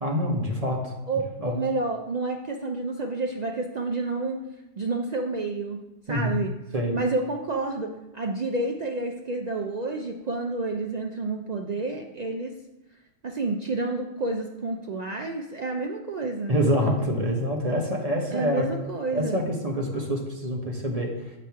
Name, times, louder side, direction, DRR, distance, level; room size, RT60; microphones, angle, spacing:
voice 1, 0.0-0.9 1.4-1.6 6.1-6.4 6.7-7.0 16.5-18.6 19.1-21.4, equal, 35° right, 1 dB, 0.8 m, -26 dB
voice 2, 1.1-4.4 4.8-5.8 6.1-6.5 6.9-12.5 13.2-16.5 18.3-19.4, right 3 dB, 75° right, 2 dB, 0.3 m, -29 dB
7.4 x 3.1 x 5.6 m, 1.0 s
omnidirectional pair, 1.3 m